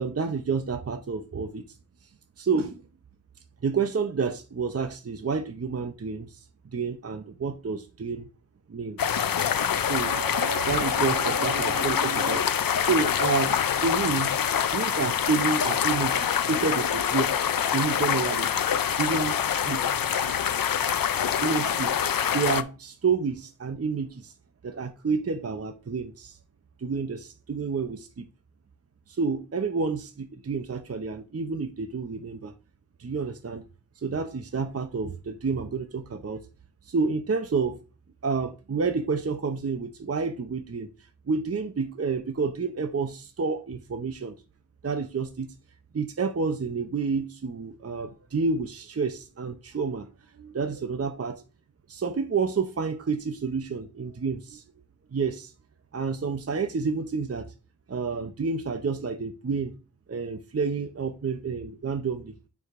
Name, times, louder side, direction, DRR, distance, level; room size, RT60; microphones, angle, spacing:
voice 1, 0.0-1.7 2.4-2.8 3.6-6.4 6.7-8.3 8.7-9.2 9.8-14.3 14.7-17.3 17.7-18.5 19.0-19.8 21.4-21.9 22.3-24.3 24.6-26.4 26.8-28.3 29.1-32.5 33.0-33.6 34.0-36.5 36.8-37.8 38.2-40.9 41.3-44.4 44.8-45.5 45.9-50.1 50.4-51.4 51.9-54.6 55.1-55.5 55.9-57.5 57.9-59.7 60.1-62.3, right 5 dB, 45° right, 0.6 m, -29 dB
sound 1, 9.0-22.6, left 8 dB, 75° left, 0.5 m, -25 dB
9.4 x 4.7 x 2.5 m
wide cardioid pair, 55°, 35 cm